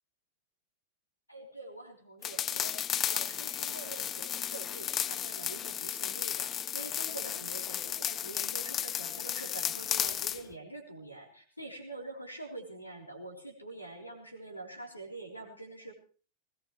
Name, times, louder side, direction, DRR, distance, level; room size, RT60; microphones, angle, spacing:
voice 1, 1.3-15.9, right 2 dB, 85° left, 3 dB, 3.5 m, -45 dB
sound 1, 2.2-10.4, left 10 dB, 30° left, 0.6 m, -34 dB
20.0 x 18.0 x 3.1 m, 0.40 s
figure-of-eight pair, 90°, 0 cm